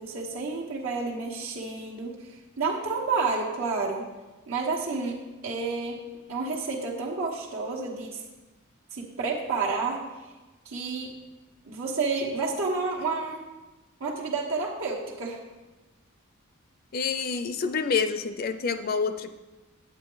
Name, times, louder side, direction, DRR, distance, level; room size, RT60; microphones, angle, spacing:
voice 1, 0.0-4.1 4.5-6.0 6.3-8.2 8.9-10.0 10.6-11.1 11.6-13.4 14.0-15.4, right 4 dB, 85° right, -8 dB, 1.5 m, -30 dB
voice 2, 16.9-19.3, left 5 dB, 45° left, 10 dB, 0.4 m, -27 dB
9.6 x 8.8 x 4.0 m, 1.1 s
head